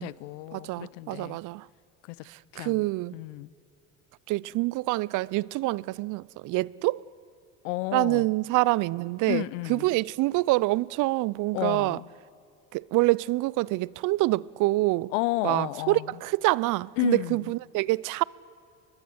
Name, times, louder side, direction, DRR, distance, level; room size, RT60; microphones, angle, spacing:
voice 1, 0.0-1.4 2.1-2.2 2.5-2.9 3.1-3.5 7.6-8.3 9.3-9.9 11.5-12.1 15.1-16.1 17.0-17.4, left 20 dB, 85° left, 0.6 m, -31 dB
voice 2, 0.5-1.7 2.3-3.2 4.3-7.0 7.9-12.0 12.7-15.1 15.4-18.2, right 20 dB, 55° right, 0.5 m, -26 dB
22.5 x 21.5 x 7.8 m
supercardioid pair, 95°, 37 cm